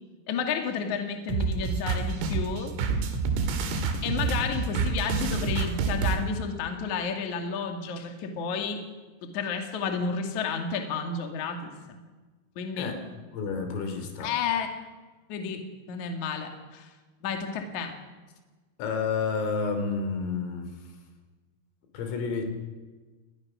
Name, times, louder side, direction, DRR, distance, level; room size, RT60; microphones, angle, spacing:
voice 1, 0.3-2.7 4.0-8.8 9.2-12.0 12.6-12.9 14.2-14.7 15.3-15.6 15.9-16.9 17.2-17.9, left 6 dB, 50° left, 4 dB, 2.6 m, -31 dB
sound 1, 1.3-6.2, right 5 dB, 85° right, 4.9 m, -28 dB
voice 2, 13.3-14.3 18.8-20.7 21.9-22.4, left 5 dB, 75° left, 6 dB, 5.6 m, -30 dB
28.5 x 20.0 x 6.2 m, 1.3 s
omnidirectional pair, 5.9 m